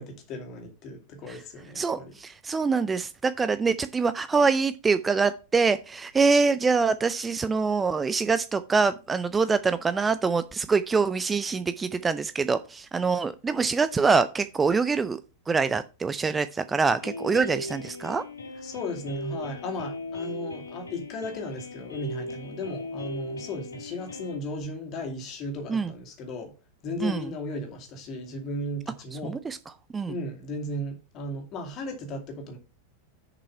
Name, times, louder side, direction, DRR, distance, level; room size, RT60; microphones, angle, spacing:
voice 1, 0.0-2.2 18.6-26.5 26.8-29.4 30.1-32.6, left 1 dB, 35° left, 2.3 m, -36 dB
voice 2, 1.8-15.2 15.5-18.2 25.7-25.9 27.0-27.3 29.2-29.6 29.9-30.2, right 4 dB, 15° right, 0.5 m, -25 dB
sound 1, 17.0-24.4, left 1 dB, 75° left, 1.4 m, -38 dB
7.0 x 5.4 x 5.5 m
figure-of-eight pair, 90°, 0 cm